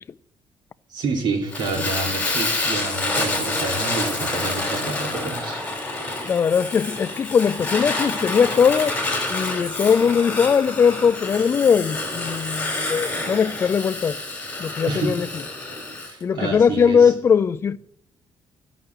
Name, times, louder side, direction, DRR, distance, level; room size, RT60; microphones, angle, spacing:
voice 1, 0.9-5.7 14.9-15.2 16.0-17.1, right 3 dB, 65° right, 2.7 m, -28 dB
Fire, 1.5-16.1, left 2 dB, 15° left, 2.9 m, -28 dB
voice 2, 6.2-8.9 9.3-14.2 14.6-15.3 16.2-17.8, left 6 dB, 30° left, 0.4 m, -20 dB
13.0 x 6.0 x 7.8 m
cardioid pair, 145°, 8 cm